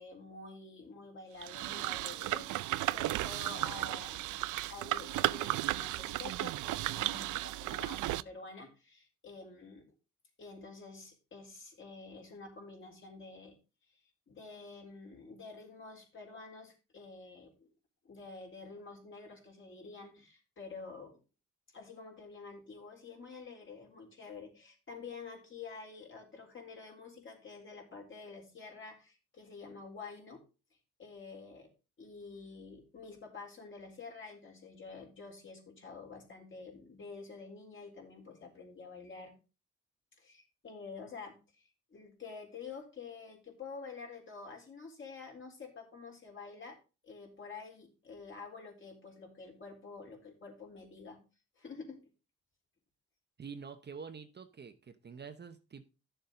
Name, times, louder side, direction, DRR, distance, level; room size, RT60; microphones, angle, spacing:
voice 1, 0.0-4.3 4.6-9.9 10.4-13.6 14.3-17.5 18.1-21.1 21.7-30.4 31.0-31.7 32.0-39.3 40.2-46.8 47.0-51.2 51.6-52.0, left 4 dB, 40° left, 1 dB, 3.8 m, -48 dB
sound 1, 1.4-8.2, right 17 dB, 80° right, 0.5 m, -34 dB
voice 2, 53.4-55.9, right 6 dB, 35° right, 8 dB, 1.0 m, -47 dB
11.5 x 7.0 x 3.9 m, 0.32 s
cardioid pair, 90°, 30 cm